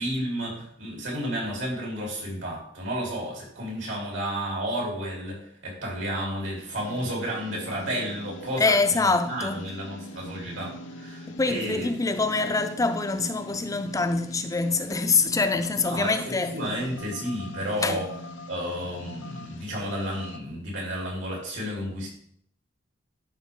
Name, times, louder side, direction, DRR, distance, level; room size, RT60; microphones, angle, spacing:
voice 1, 0.0-11.9 15.8-18.1 18.5-22.1, equal, 80° right, 3.5 m, -32 dB
sound 1, 6.8-20.4, left 1 dB, 75° left, 0.7 m, -41 dB
voice 2, 8.6-9.6 11.4-16.5 17.8-18.0, left 3 dB, 20° left, 0.5 m, -25 dB
11.0 x 4.6 x 3.7 m
head